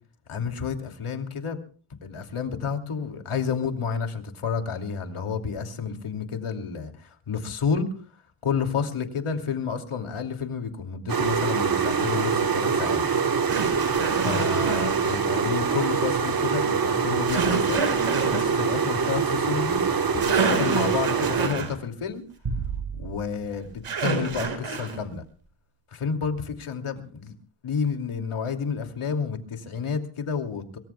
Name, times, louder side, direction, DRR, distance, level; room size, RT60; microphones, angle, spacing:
voice 1, 0.3-1.6 2.0-7.9 8.4-13.0 14.2-17.9 18.3-19.8 20.1-22.2 23.0-25.2 25.9-27.3 27.6-30.8, left 6 dB, 80° left, 2.8 m, -30 dB
sound 1, 11.1-21.5, right 6 dB, 45° right, 1.5 m, -24 dB
sound 2, 12.0-12.1 13.5-15.2 17.2-18.4 19.9-20.0 20.2-21.7 23.8-25.0, right 4 dB, 75° right, 5.0 m, -28 dB
sound 3, 22.4-24.9, right 5 dB, 60° right, 7.3 m, -35 dB
24.5 x 23.5 x 2.3 m
wide cardioid pair, 125°, 50 cm